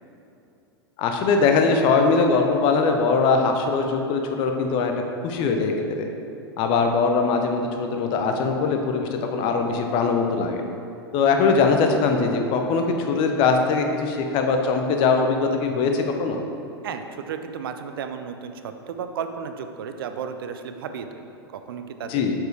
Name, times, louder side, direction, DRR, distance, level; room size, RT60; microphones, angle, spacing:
voice 1, 1.0-4.9 5.2-5.7 6.0-6.1 6.6-10.6 11.1-16.4 22.1-22.3, left 4 dB, 40° left, 4 dB, 0.7 m, -21 dB
voice 2, 16.8-21.1 21.7-22.2, right 7 dB, 60° right, 8 dB, 0.4 m, -33 dB
7.8 x 4.6 x 3.3 m, 2.7 s
figure-of-eight pair, 90°, 13 cm